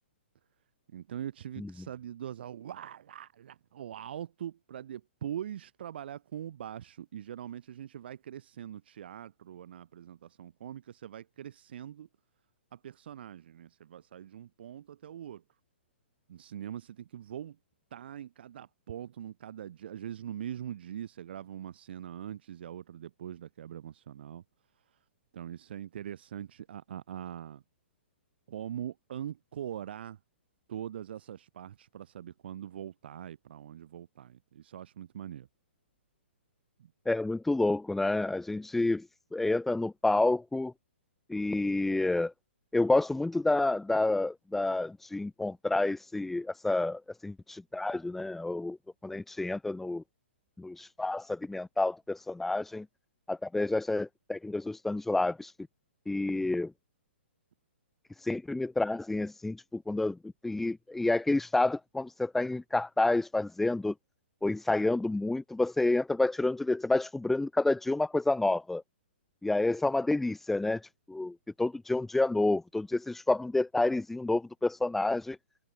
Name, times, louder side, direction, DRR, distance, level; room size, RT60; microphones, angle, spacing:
voice 1, 0.9-12.1 12.7-15.4 16.3-17.6 17.9-24.4 25.3-27.6 28.5-30.2 30.7-35.5 36.8-36.9, right 10 dB, 60° right, 4.6 m, -42 dB
voice 2, 37.1-39.1 39.3-40.7 41.3-42.3 42.7-48.8 49.0-50.0 50.6-52.9 53.3-55.5 56.1-56.7 58.2-60.2 60.4-63.9 64.4-68.8 69.4-70.8 71.1-75.4, left 2 dB, 5° left, 0.4 m, -29 dB
hypercardioid pair, 145°, 6 cm